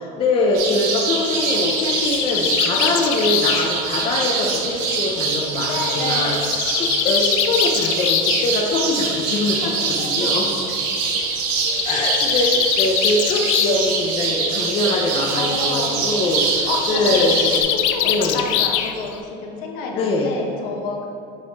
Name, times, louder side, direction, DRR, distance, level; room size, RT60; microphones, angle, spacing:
voice 1, 0.0-6.4 6.7-9.7 10.0-10.5 11.8-17.7 18.0-18.4 19.9-20.3, left 2 dB, 35° left, -1 dB, 0.6 m, -23 dB
sound 1, 0.5-17.6, right 4 dB, 65° right, 0.9 m, -24 dB
Bird, 1.2-5.0 6.1-8.5 9.5-9.6 10.0-10.1 10.3-10.4 11.5-13.9 14.2-14.6 16.7-19.2, left 10 dB, 85° left, 0.5 m, -23 dB
voice 2, 5.6-6.4 9.5-10.3 15.3-16.0 16.7-17.4 17.9-19.1 19.4-21.1, left 3 dB, 65° left, 1 dB, 1.1 m, -29 dB
7.6 x 4.1 x 4.0 m, 2.6 s
cardioid pair, 135°, 15 cm